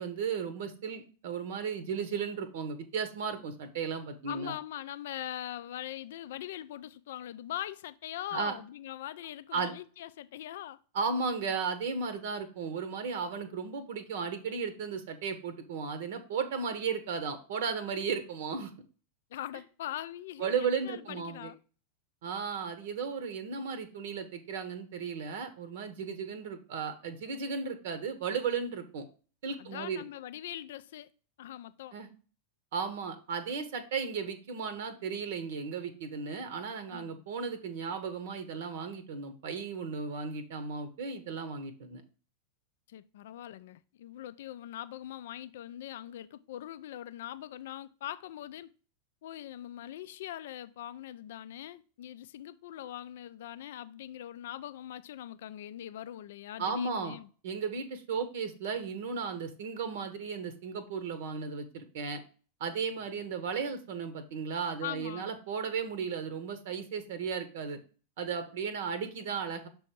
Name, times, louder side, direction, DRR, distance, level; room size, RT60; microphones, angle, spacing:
voice 1, 0.0-4.5 8.3-8.5 9.5-9.7 10.9-18.7 20.4-21.5 22.2-29.0 29.4-30.0 31.9-32.1 32.7-42.0 56.6-57.2 57.4-62.2 62.6-67.8 68.2-69.7, right 5 dB, 55° right, 0.8 m, -35 dB
voice 2, 4.3-10.8 19.3-21.6 26.0-26.2 29.6-31.1 31.4-32.0 36.9-37.2 42.9-48.7 49.2-57.3 64.8-65.3, left 12 dB, 55° left, 0.3 m, -42 dB
6.7 x 3.5 x 4.4 m
figure-of-eight pair, 90°, 0 cm